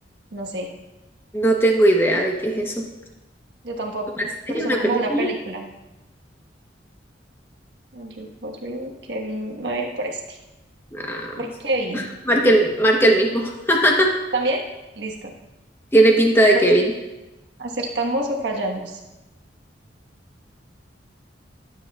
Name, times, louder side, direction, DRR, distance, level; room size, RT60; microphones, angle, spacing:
voice 1, 0.3-0.7 3.6-5.6 7.9-10.4 11.4-12.1 14.3-14.6 14.9-15.3 16.5-16.6 17.6-19.0, right 2 dB, 70° right, 0 dB, 1.4 m, -28 dB
voice 2, 1.3-2.9 4.5-5.3 10.9-11.5 11.9-14.1 15.9-16.9, right 1 dB, 15° left, 0 dB, 1.0 m, -18 dB
12.5 x 7.8 x 2.4 m, 1.0 s
head